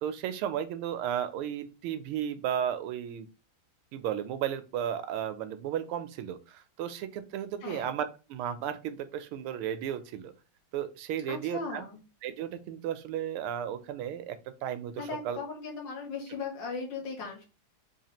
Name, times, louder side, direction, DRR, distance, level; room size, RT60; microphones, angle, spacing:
voice 1, 0.0-3.3 3.9-10.3 10.7-11.8 12.2-15.4, right 9 dB, 90° right, 10 dB, 1.5 m, -34 dB
voice 2, 7.6-7.9 11.3-12.0 15.0-17.4, left 4 dB, 60° left, 1 dB, 2.1 m, -38 dB
4.0 x 3.1 x 2.8 m, 0.31 s
omnidirectional pair, 2.3 m